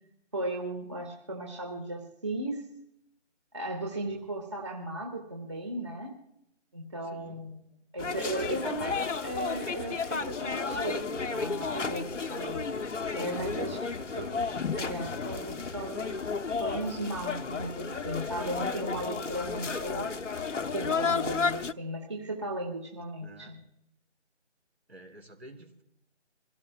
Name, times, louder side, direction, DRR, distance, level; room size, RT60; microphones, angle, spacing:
voice 1, 0.3-2.6 3.5-6.1 6.7-7.6 7.9-12.6 13.1-13.8 14.2-14.3 14.7-16.1 16.6-20.1 20.7-23.6, right 1 dB, 25° right, 1 dB, 1.5 m, -36 dB
voice 2, 3.8-4.3 7.0-7.5 13.9-14.5 23.2-23.6 24.9-25.8, right 1 dB, 60° right, 2 dB, 3.9 m, -51 dB
sound 1, 8.0-21.7, left 5 dB, 85° left, 0.9 m, -32 dB
27.0 x 17.0 x 2.2 m, 0.82 s
figure-of-eight pair, 170°, 36 cm